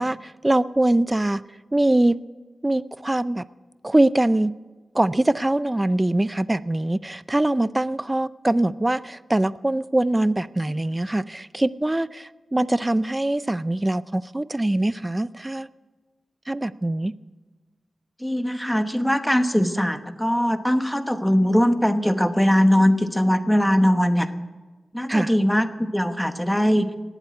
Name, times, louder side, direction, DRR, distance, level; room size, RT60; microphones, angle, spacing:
voice 1, 0.0-1.4 1.7-2.2 2.6-3.4 3.8-4.5 4.9-15.7 16.5-17.1 25.1-25.3, right 1 dB, 20° right, 16 dB, 0.4 m, -23 dB
voice 2, 18.2-24.3 24.9-26.9, equal, 5° left, 8 dB, 1.1 m, -21 dB
18.0 x 8.1 x 9.5 m, 1.3 s
cardioid pair, 75°, 0 cm